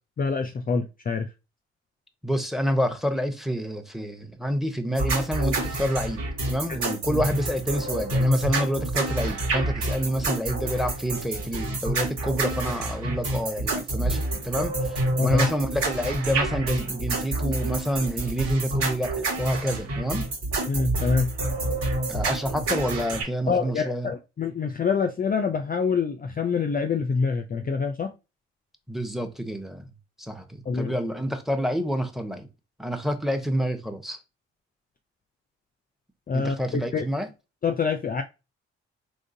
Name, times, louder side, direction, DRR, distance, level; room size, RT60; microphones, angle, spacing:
voice 1, 0.2-1.3 15.2-15.5 20.7-21.3 23.5-28.1 30.7-31.0 36.3-37.0 37.6-38.2, left 5 dB, 30° left, 0.5 m, -26 dB
voice 2, 2.2-20.3 22.1-24.1 28.9-29.8 30.2-32.5 32.8-34.2 36.3-37.3, equal, ahead, 0.9 m, -28 dB
sound 1, 5.0-23.2, right 2 dB, 85° right, 1.9 m, -28 dB
3.7 x 3.1 x 2.6 m
hypercardioid pair, 50°, 30 cm